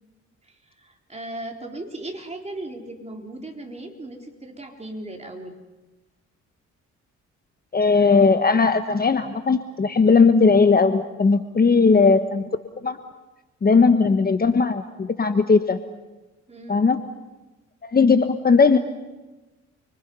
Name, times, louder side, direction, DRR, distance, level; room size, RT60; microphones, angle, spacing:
voice 1, 0.4-5.5 11.6-11.8 16.5-16.8, right 1 dB, 20° right, 2 dB, 4.0 m, -37 dB
voice 2, 7.7-12.4 12.8-13.0 13.6-15.8 16.7-17.0 17.8-18.8, left 4 dB, 30° left, 9 dB, 1.3 m, -18 dB
29.5 x 24.0 x 5.6 m, 1.1 s
cardioid pair, 90°, 30 cm